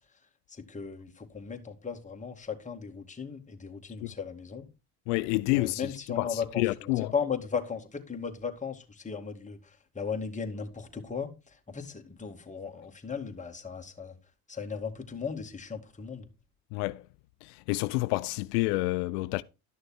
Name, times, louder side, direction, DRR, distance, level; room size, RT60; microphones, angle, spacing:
voice 1, 0.5-4.7 5.5-14.1 14.5-16.3, left 6 dB, 15° left, 2.2 m, -36 dB
voice 2, 5.1-7.1 16.7-17.0 17.4-19.4, left 21 dB, 80° left, 0.6 m, -29 dB
12.0 x 6.4 x 4.3 m
supercardioid pair, 95°, 46 cm